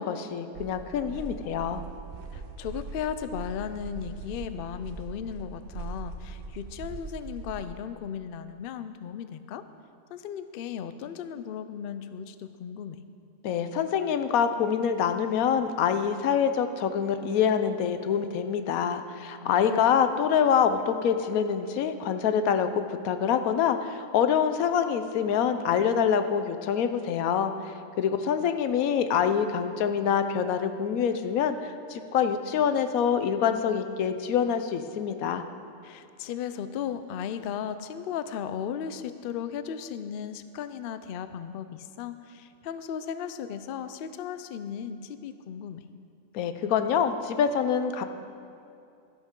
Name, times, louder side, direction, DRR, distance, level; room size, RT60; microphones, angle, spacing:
voice 1, 0.0-1.8 13.4-27.5 28.0-35.4 46.3-48.0, left 7 dB, 90° left, 9 dB, 1.1 m, -25 dB
sound 1, 0.5-7.6, right 4 dB, 55° right, 0.7 m, -41 dB
voice 2, 2.3-9.6 10.1-13.0 19.4-19.9 35.8-45.8, left 8 dB, 70° left, 11 dB, 0.5 m, -36 dB
13.0 x 10.5 x 3.7 m, 2.6 s
omnidirectional pair, 1.5 m